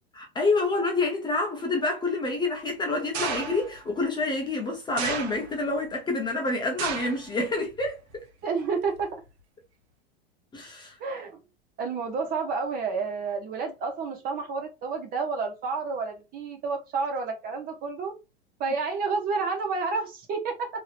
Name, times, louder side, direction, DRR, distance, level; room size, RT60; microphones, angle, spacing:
voice 1, 0.2-8.0 10.5-10.9, left 3 dB, 15° left, 0.7 m, -27 dB
sound 1, 3.1-3.8 5.0-5.7 6.8-7.3 7.7-8.2 9.0-9.1, right 6 dB, 85° right, 0.9 m, -33 dB
voice 2, 8.4-9.1 11.0-11.4 11.8-18.1 18.6-20.7, right 4 dB, 30° right, 0.7 m, -30 dB
2.9 x 2.8 x 2.4 m
supercardioid pair, 135°, 31 cm